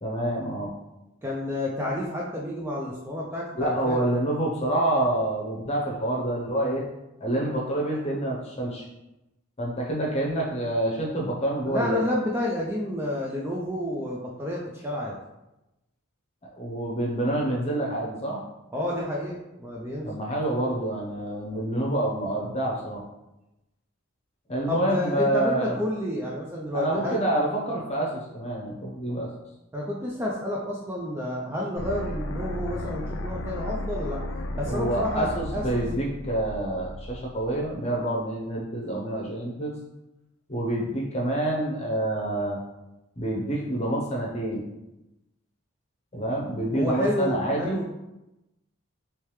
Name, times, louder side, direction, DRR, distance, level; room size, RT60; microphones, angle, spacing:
voice 1, 0.0-0.7 3.5-6.8 7.2-8.8 9.6-12.0 16.5-18.4 20.0-23.0 24.5-25.8 26.7-29.3 34.6-39.8 40.5-42.6 43.2-44.6 46.1-47.8, right 1 dB, 30° left, -2 dB, 0.7 m, -27 dB
voice 2, 1.2-4.0 11.7-15.2 18.7-20.1 24.7-27.2 29.7-34.2 34.5-35.9 46.7-47.9, left 1 dB, 10° right, -4 dB, 0.3 m, -30 dB
sound 1, 31.8-37.7, left 1 dB, 65° left, 0.4 m, -34 dB
3.3 x 3.2 x 3.1 m, 0.94 s
head